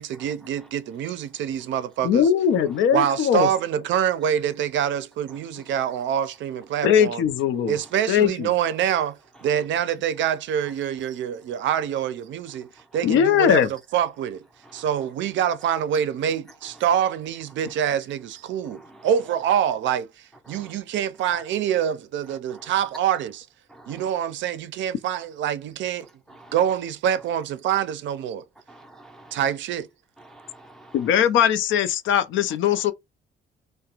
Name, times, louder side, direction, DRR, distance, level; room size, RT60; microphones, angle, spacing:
voice 1, 0.0-2.3 2.9-7.2 7.7-9.1 9.4-14.4 14.7-23.4 23.9-26.1 26.5-28.4 29.3-29.9, right 9 dB, 70° right, 0.4 m, -25 dB
voice 2, 2.0-3.5 6.8-7.8 8.1-8.5 13.0-13.7 30.9-32.9, left 9 dB, 75° left, 0.5 m, -20 dB
voice 3, 5.3-5.8 7.7-7.9 10.6-10.7 14.6-14.9 17.6-17.7 18.6-19.1 20.4-20.7 22.3-22.7 23.7-24.1 26.3-26.6 28.7-29.4 30.2-31.3 32.6-32.9, right 1 dB, ahead, 0.5 m, -49 dB
2.4 x 2.1 x 2.8 m
cardioid pair, 90°, 20 cm